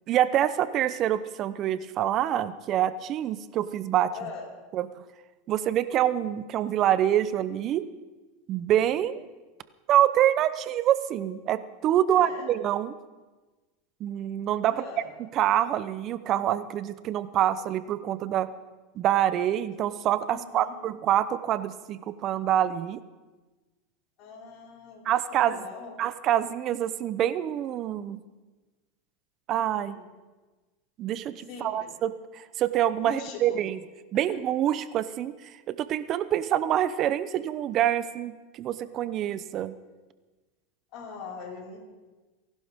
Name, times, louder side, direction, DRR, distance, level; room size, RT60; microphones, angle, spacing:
voice 1, 0.1-4.1 4.7-4.9 5.5-7.9 8.5-9.2 9.9-12.9 14.0-14.8 15.3-18.5 19.0-23.0 25.0-25.6 26.0-28.2 29.5-30.0 31.0-33.8 34.1-39.7, right 11 dB, 40° right, 14 dB, 0.8 m, -26 dB
voice 2, 4.1-4.5 8.9-9.1 12.1-12.6 14.6-15.1 20.3-20.8 24.2-25.0 25.3-26.0 29.7-30.1 31.5-31.9 33.0-33.6 34.1-34.4 40.9-41.8, left 5 dB, 50° left, -3 dB, 5.4 m, -41 dB
29.0 x 11.5 x 3.7 m, 1.2 s
supercardioid pair, 120°, 0 cm